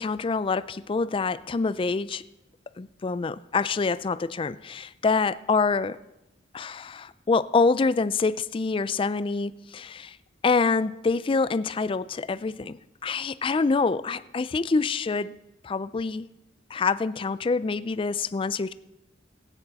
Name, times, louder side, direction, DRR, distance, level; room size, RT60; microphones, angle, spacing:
voice 1, 0.0-2.2 2.8-6.0 6.5-10.2 10.4-15.4 15.6-16.3 16.7-18.7, left 4 dB, 30° left, 16 dB, 0.3 m, -26 dB
17.5 x 9.1 x 4.1 m, 0.93 s
head